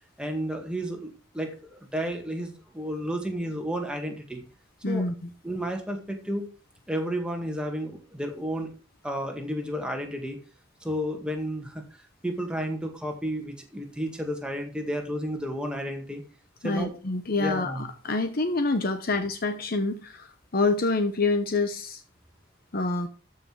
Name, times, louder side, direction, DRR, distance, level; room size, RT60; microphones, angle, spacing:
voice 1, 0.2-4.4 4.9-5.1 5.4-6.5 6.9-8.7 9.0-10.4 10.8-11.8 12.2-16.2 16.6-16.9 17.4-17.9, equal, 5° right, 3 dB, 1.9 m, -32 dB
voice 2, 4.8-5.3 16.6-22.0 22.7-23.1, left 3 dB, 50° left, 8 dB, 0.9 m, -27 dB
13.5 x 5.8 x 4.7 m, 0.36 s
head